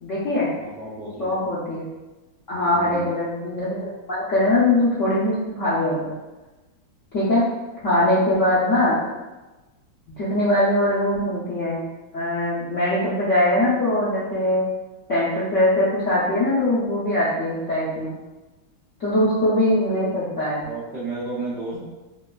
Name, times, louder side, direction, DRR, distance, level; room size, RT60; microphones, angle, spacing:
voice 1, 0.0-0.5 1.2-1.9 2.5-6.1 7.1-7.4 7.8-9.0 10.2-11.8 12.1-14.6 15.1-18.1 19.0-20.6, left 1 dB, 65° left, -10 dB, 0.7 m, -21 dB
voice 2, 0.6-1.4 2.7-3.1 20.6-21.8, right 3 dB, 70° right, -9 dB, 0.6 m, -32 dB
3.3 x 3.0 x 2.2 m, 1.1 s
omnidirectional pair, 2.2 m